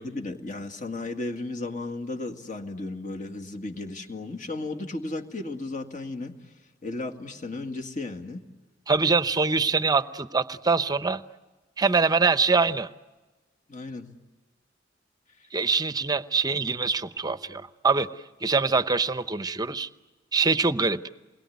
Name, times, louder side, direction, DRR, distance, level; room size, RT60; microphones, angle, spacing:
voice 1, 0.0-6.3 6.8-8.4 13.7-14.1, left 2 dB, 45° left, 3 dB, 2.2 m, -34 dB
voice 2, 8.9-11.2 11.8-12.9 15.5-18.1 18.4-19.9 20.3-21.0, right 4 dB, 20° right, 12 dB, 0.8 m, -24 dB
28.5 x 22.0 x 9.5 m, 1.2 s
head